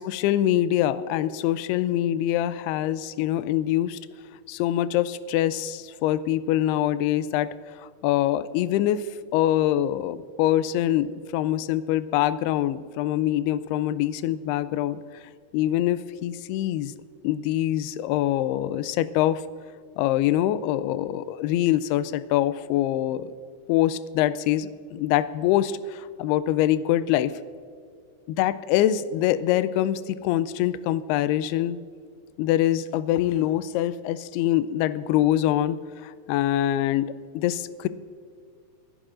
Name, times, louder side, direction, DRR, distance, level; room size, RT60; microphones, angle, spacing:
voice 1, 0.1-4.0 4.5-7.5 8.0-9.0 9.3-15.0 15.5-16.9 17.2-19.4 20.0-23.3 23.7-27.3 28.3-31.8 32.4-35.8 36.0-37.9, left 12 dB, 85° left, 14 dB, 2.4 m, -24 dB
25.5 x 11.5 x 2.5 m, 2.2 s
omnidirectional pair, 5.0 m